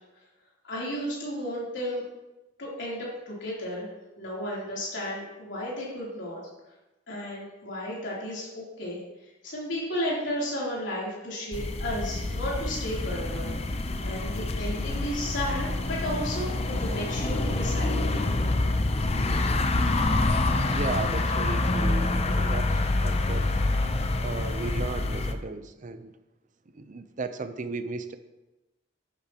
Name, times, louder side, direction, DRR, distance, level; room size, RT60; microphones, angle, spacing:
voice 1, 0.6-2.0 2.6-3.9 4.2-6.4 7.1-9.0 9.4-13.5 14.0-18.3, equal, 70° left, -6 dB, 3.2 m, -33 dB
sound 1, 11.5-25.3, left 2 dB, 35° left, 0.6 m, -27 dB
voice 2, 20.6-23.5 24.2-26.1 26.7-28.2, right 3 dB, 40° right, 10 dB, 0.6 m, -35 dB
10.5 x 8.7 x 2.9 m, 1.0 s
head